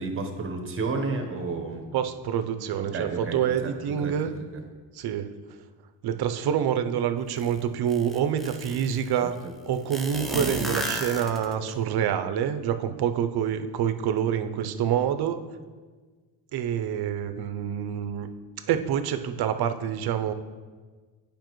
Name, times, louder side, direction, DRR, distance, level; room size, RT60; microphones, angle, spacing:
voice 1, 0.0-1.9 2.8-4.1 4.5-4.6 9.2-9.5, right 3 dB, 25° right, 4 dB, 1.0 m, -32 dB
voice 2, 1.9-4.3 4.9-5.3 6.0-9.4 9.7-15.4 16.5-18.3 18.7-20.3, right 9 dB, 55° right, 10 dB, 0.5 m, -27 dB
sound 1, 7.4-7.5 7.9-9.0 9.9-11.7, equal, ahead, 0.5 m, -32 dB
8.9 x 5.1 x 3.0 m, 1.4 s
cardioid pair, 110°, 46 cm